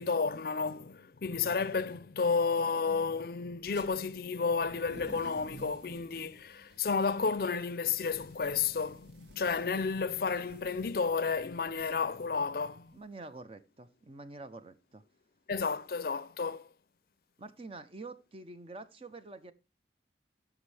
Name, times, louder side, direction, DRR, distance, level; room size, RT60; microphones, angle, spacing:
voice 1, 0.0-12.9 15.5-16.6, left 5 dB, 55° left, 0.5 m, -32 dB
sound 1, 3.6-3.9 4.5-13.0, right 1 dB, 85° right, 1.7 m, -54 dB
voice 2, 12.9-15.0 17.4-19.5, right 3 dB, 35° right, 0.7 m, -47 dB
15.0 x 6.1 x 3.3 m
head